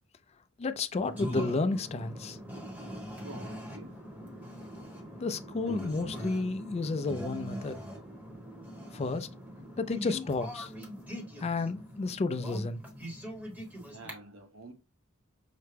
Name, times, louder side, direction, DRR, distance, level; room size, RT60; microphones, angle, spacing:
voice 1, 0.6-2.4 5.2-7.8 8.9-9.3 9.8-10.7 11.4-12.8, left 3 dB, 30° left, 0.4 m, -31 dB
sound 1, 1.0-14.1, equal, 10° right, 1.0 m, -42 dB
voice 2, 3.2-4.0 13.9-14.7, right 2 dB, 70° right, 1.1 m, -48 dB
5.7 x 2.1 x 3.3 m
head